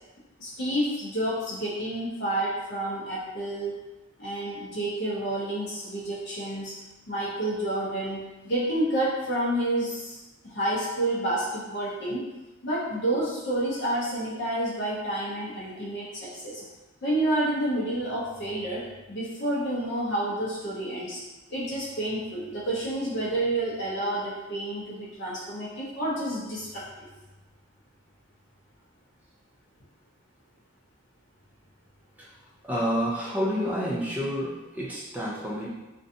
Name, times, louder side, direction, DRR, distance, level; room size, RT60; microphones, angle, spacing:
voice 1, 0.4-3.8 4.2-6.7 7.1-10.2 10.4-12.2 12.6-16.6 17.0-18.8 19.1-21.2 21.5-26.8, right 1 dB, 50° left, -7 dB, 0.5 m, -29 dB
voice 2, 32.6-35.7, equal, 10° right, -5 dB, 0.4 m, -30 dB
2.5 x 2.2 x 2.6 m, 1.1 s
head